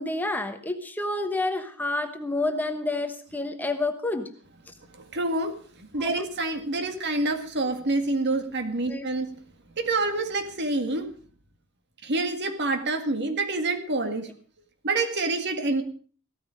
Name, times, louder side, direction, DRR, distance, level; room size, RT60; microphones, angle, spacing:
voice 1, 0.0-4.3 6.0-6.3 8.9-9.1, left 2 dB, 10° left, 7 dB, 1.1 m, -29 dB
voice 2, 4.9-9.3 9.8-11.1 12.0-14.3 14.8-15.8, right 2 dB, 50° right, 7 dB, 1.9 m, -27 dB
15.5 x 13.5 x 5.0 m, 0.43 s
head